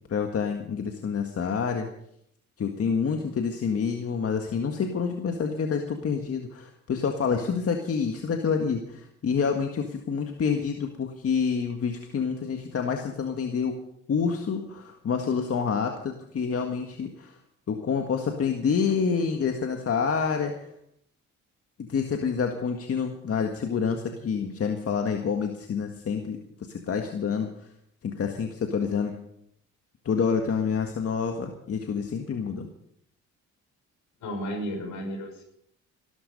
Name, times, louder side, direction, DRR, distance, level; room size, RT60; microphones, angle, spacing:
voice 1, 0.1-1.9 2.6-13.8 14.1-17.4 17.7-20.7 21.9-27.7 28.0-29.1 30.1-32.7, left 6 dB, 50° left, 4 dB, 1.8 m, -28 dB
voice 2, 34.2-35.4, equal, 75° left, 4 dB, 5.8 m, -33 dB
17.5 x 13.0 x 5.4 m, 0.72 s
cardioid pair, 90°, 30 cm